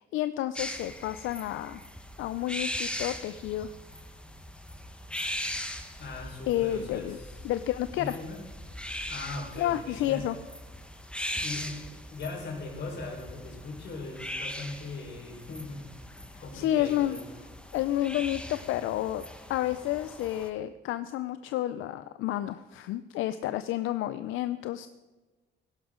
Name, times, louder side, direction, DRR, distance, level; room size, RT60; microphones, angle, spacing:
voice 1, 0.0-1.8 2.2-3.7 6.5-7.2 7.4-8.2 9.6-10.4 16.5-17.2 17.7-19.2 19.5-24.9, left 13 dB, 85° left, 12 dB, 0.4 m, -30 dB
sound 1, 0.6-20.5, left 1 dB, 5° left, 1.1 m, -40 dB
voice 2, 6.0-7.4 8.0-8.4 9.1-10.2 11.4-15.8 16.2-17.2, left 3 dB, 60° left, -1 dB, 4.3 m, -39 dB
15.5 x 11.0 x 3.7 m, 1.2 s
cardioid pair, 90°, 20 cm